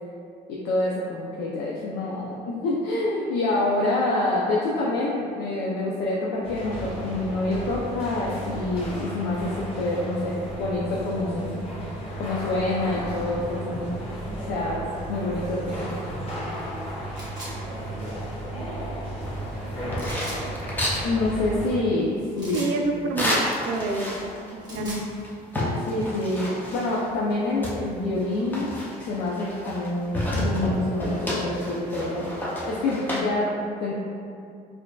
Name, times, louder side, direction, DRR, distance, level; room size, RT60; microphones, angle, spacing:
voice 1, 0.5-11.6 12.2-13.9 14.5-14.8 15.1-15.9 21.0-22.7 24.7-25.0 25.9-33.9, left 2 dB, 75° left, -4 dB, 0.5 m, -27 dB
sound 1, 6.4-21.8, right 1 dB, 35° left, 1.2 m, -34 dB
sound 2, 17.1-17.5 20.0-20.4 22.4-22.7 24.4-25.1, right 1 dB, 25° right, 1.1 m, -39 dB
sound 3, 19.2-21.1 23.2-24.5 24.9-25.0 25.2-27.1 27.6-29.9 30.1-33.2, left 1 dB, 10° left, 0.6 m, -30 dB
voice 2, 22.5-24.1 24.5-25.0, right 3 dB, 90° right, 2 dB, 0.4 m, -28 dB
4.4 x 2.6 x 2.3 m, 2.4 s
cardioid pair, 110°, 17 cm